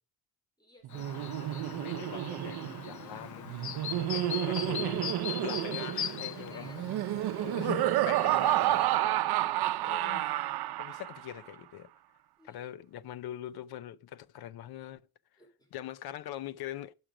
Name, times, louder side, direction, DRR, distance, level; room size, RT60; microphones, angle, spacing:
voice 1, 0.6-1.1 2.8-3.4 4.0-4.5 6.1-6.8 7.2-7.8 9.2-9.7 12.4-12.7 15.4-15.7, equal, 10° left, 2.7 m, -57 dB
Laughter, 0.8-11.3, right 14 dB, 85° right, 0.6 m, -30 dB
Chirp tweet, 0.9-8.9, left 9 dB, 50° left, 0.8 m, -41 dB
voice 2, 1.1-3.5 4.1-6.9 7.4-8.9 9.8-10.3 10.8-11.9 12.4-15.0 15.7-16.9, left 12 dB, 85° left, 0.7 m, -42 dB
10.0 x 6.4 x 4.9 m
cardioid pair, 165°, 37 cm